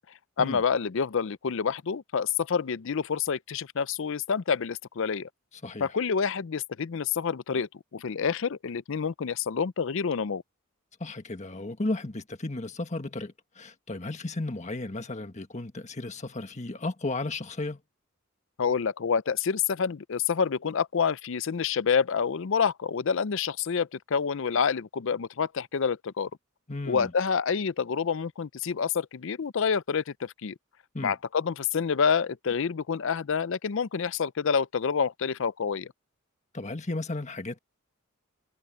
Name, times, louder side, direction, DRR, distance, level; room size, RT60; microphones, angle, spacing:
voice 1, 0.4-5.3 5.8-10.4 18.6-26.3 26.9-30.5 31.0-35.9, left 6 dB, 65° left, 0.5 m, -28 dB
voice 2, 5.6-5.9 11.0-17.8 26.7-27.1 30.9-31.1 36.5-37.6, left 2 dB, 35° left, 1.5 m, -34 dB
head